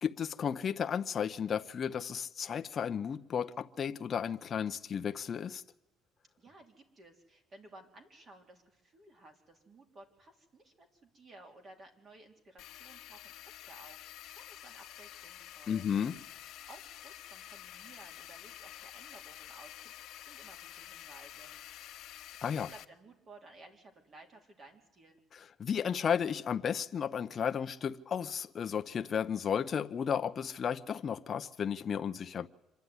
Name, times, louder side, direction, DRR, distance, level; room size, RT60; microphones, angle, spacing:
voice 1, 0.0-5.6 15.7-16.2 22.4-22.7 25.3-32.5, left 7 dB, 35° left, 0.8 m, -33 dB
voice 2, 6.4-15.9 16.7-21.6 22.2-25.2, right 2 dB, 35° right, 3.5 m, -56 dB
sound 1, 12.6-22.8, left 13 dB, 60° left, 1.3 m, -49 dB
25.5 x 11.5 x 9.5 m
cardioid pair, 140°, 0 cm